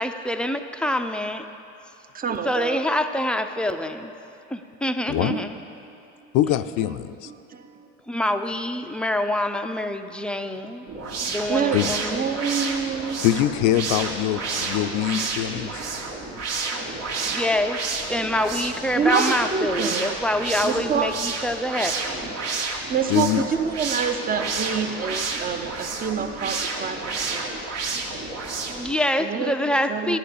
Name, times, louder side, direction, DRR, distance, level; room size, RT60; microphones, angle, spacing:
voice 1, 0.0-1.4 2.4-4.1 4.5-5.5 8.1-10.8 11.3-12.3 17.2-22.3 28.7-30.2, left 1 dB, 5° left, 7 dB, 0.5 m, -26 dB
voice 2, 2.1-2.8 5.1-5.4 7.5-7.9 11.2-11.8 12.1-13.2 15.8-15.9 16.7-16.9 17.3-17.4 18.9-20.2 20.6-21.1 22.9-27.5 27.9-28.1 28.7-28.9 29.2-30.2, right 6 dB, 25° right, 8 dB, 0.8 m, -27 dB
voice 3, 5.1-5.4 6.3-7.3 11.7-12.0 13.2-15.8 23.1-23.4, left 12 dB, 55° left, 12 dB, 0.6 m, -23 dB
sound 1, 10.9-28.9, right 3 dB, 60° right, 2.0 m, -30 dB
11.5 x 9.4 x 6.7 m, 2.8 s
hypercardioid pair, 90°, 36 cm